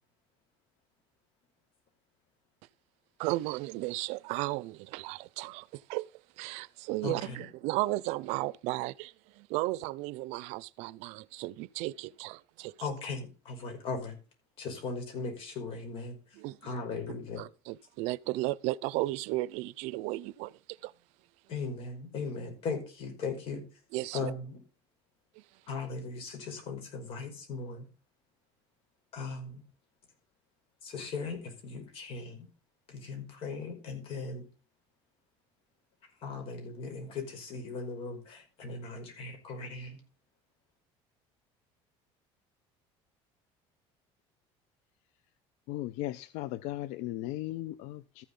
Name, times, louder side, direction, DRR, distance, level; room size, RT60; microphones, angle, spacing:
voice 1, 3.2-6.1 6.4-12.7 16.4-16.6 17.4-20.9 23.9-24.3 25.4-25.5, right 19 dB, 75° right, 0.6 m, -34 dB
voice 2, 7.0-7.5 12.8-14.2 14.6-17.4 21.5-23.8 24.1-24.6 25.7-27.9 29.1-29.6 30.8-32.5 32.9-34.5 36.2-40.0, left 4 dB, 55° left, 5.4 m, -38 dB
voice 3, 45.7-48.2, left 15 dB, 75° left, 0.6 m, -37 dB
13.5 x 7.1 x 5.4 m
cardioid pair, 145°, 12 cm